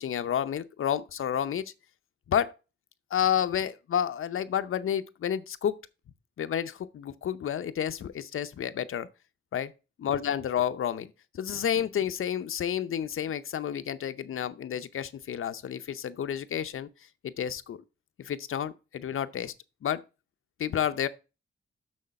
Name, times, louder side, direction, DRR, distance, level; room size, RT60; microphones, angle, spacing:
voice 1, 0.0-1.7 2.3-2.5 3.1-5.8 6.4-9.1 9.5-9.7 10.0-16.9 17.2-17.8 18.2-19.5 19.8-20.0 20.6-21.1, left 9 dB, 80° left, 0.7 m, -30 dB
6.5 x 6.4 x 5.2 m
wide cardioid pair, 100°, 21 cm